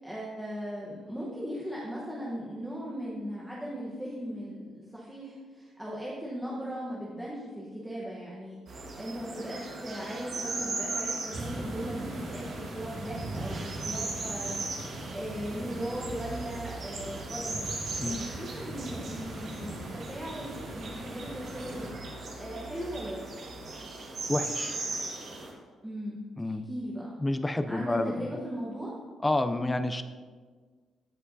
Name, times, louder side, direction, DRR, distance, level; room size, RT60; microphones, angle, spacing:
voice 1, 0.0-17.6 18.0-21.9 22.4-23.5 25.8-27.1 27.7-28.9, equal, 5° right, -6 dB, 1.0 m, -38 dB
sound 1, 8.7-25.5, right 3 dB, 45° right, 1.4 m, -38 dB
sound 2, 11.3-21.9, right 2 dB, 65° right, 2.0 m, -41 dB
voice 2, 24.3-24.8 26.4-26.7 27.2-28.3 29.2-30.0, left 2 dB, 10° left, 10 dB, 0.4 m, -29 dB
14.5 x 5.4 x 2.7 m, 1.5 s
cardioid pair, 165°, 0 cm